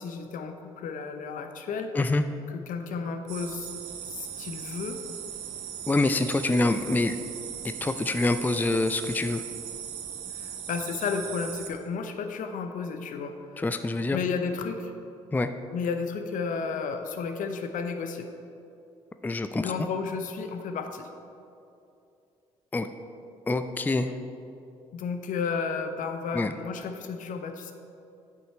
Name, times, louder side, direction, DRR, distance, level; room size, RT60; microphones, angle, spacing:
voice 1, 0.0-1.9 2.5-3.7 4.0-5.0 10.3-13.6 14.1-14.9 15.7-18.3 19.6-21.1 24.9-27.7, left 5 dB, 60° left, 7 dB, 0.7 m, -32 dB
sound 1, 3.3-11.7, right 9 dB, 80° right, 0.7 m, -38 dB
voice 2, 5.9-7.2 7.8-9.4 13.6-14.2 15.3-15.5 19.2-19.9 22.7-22.9 23.5-24.1 26.3-26.5, left 2 dB, 10° left, 9 dB, 0.4 m, -26 dB
9.5 x 5.6 x 4.4 m, 2.7 s
hypercardioid pair, 50°, 15 cm